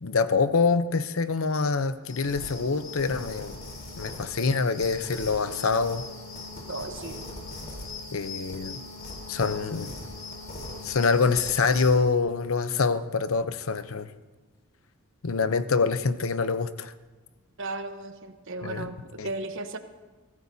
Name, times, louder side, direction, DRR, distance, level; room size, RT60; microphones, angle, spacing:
voice 1, 0.0-3.6 4.0-6.0 8.1-8.8 9.3-9.9 10.8-14.1 15.2-16.9 18.6-18.9 19.2-19.3, left 4 dB, 70° left, 12 dB, 0.7 m, -25 dB
sound 1, 2.0-12.0, left 2 dB, 40° left, 3.7 m, -40 dB
voice 2, 6.7-7.2 17.6-19.8, right 2 dB, 60° right, 8 dB, 1.0 m, -35 dB
23.5 x 16.0 x 2.8 m, 1.3 s
head